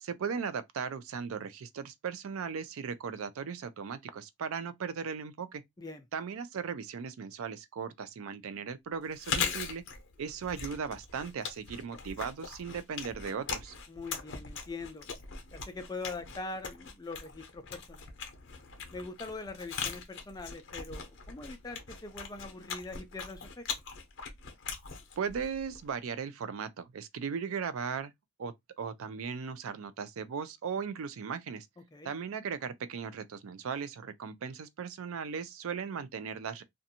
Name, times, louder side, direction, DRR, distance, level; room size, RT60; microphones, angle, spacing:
voice 1, 0.0-5.6 6.1-9.8 10.2-13.7 25.2-28.1 28.4-31.7 32.0-36.6, right 6 dB, 70° right, 0.4 m, -37 dB
Chewing mastication, 9.1-25.9, left 6 dB, 55° left, 0.7 m, -40 dB
voice 2, 13.9-15.1 15.5-18.2 18.9-23.7 31.9-32.1, left 3 dB, 15° left, 0.3 m, -42 dB
2.5 x 2.2 x 2.7 m
head